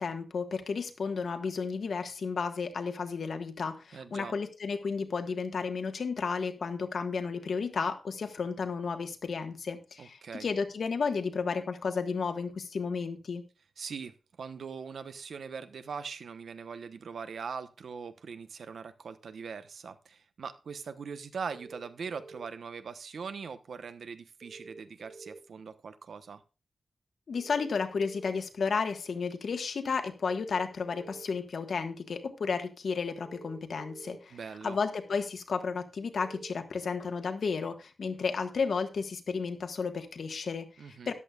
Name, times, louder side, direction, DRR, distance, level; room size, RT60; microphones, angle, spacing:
voice 1, 0.0-13.4 27.3-34.4 34.6-41.1, left 5 dB, 70° left, 1.5 m, -33 dB
voice 2, 3.9-4.3 10.0-10.5 13.8-26.4 34.3-34.8 40.8-41.1, right 5 dB, 90° right, 1.0 m, -41 dB
sound 1, 21.5-22.5 24.4-25.4 27.3-28.3 30.3-31.2 33.2-34.2 36.1-36.5, right 3 dB, 55° right, 3.3 m, -49 dB
13.5 x 11.0 x 2.4 m
wide cardioid pair, 180°, 0 cm